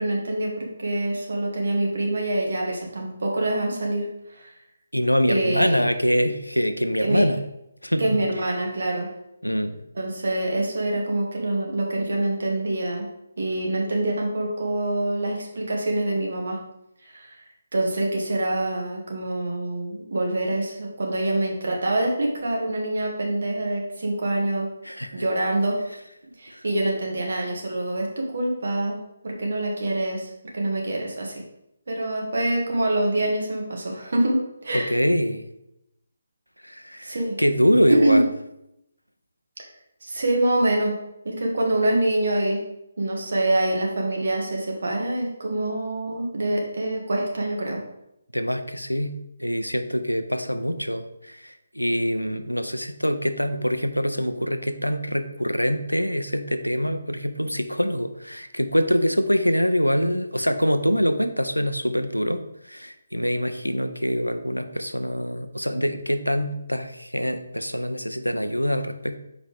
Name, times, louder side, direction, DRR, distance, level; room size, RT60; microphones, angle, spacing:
voice 1, 0.0-4.5 5.3-5.8 7.0-7.2 8.0-9.1 9.9-13.1 13.4-16.6 17.0-17.3 17.7-24.7 25.1-25.8 26.4-29.0 29.2-31.4 31.9-34.9 37.0-37.3 37.9-38.2 40.0-40.9 41.2-42.6 43.0-47.8, right 1 dB, 55° right, 0 dB, 1.6 m, -25 dB
voice 2, 4.9-7.4 7.8-8.2 9.4-9.8 24.8-25.2 26.5-26.6 34.7-35.4 36.6-38.3 48.3-49.1 49.4-62.4 62.7-69.2, equal, 90° left, 9 dB, 0.6 m, -24 dB
6.5 x 4.9 x 3.4 m, 0.84 s
figure-of-eight pair, 145°, 0 cm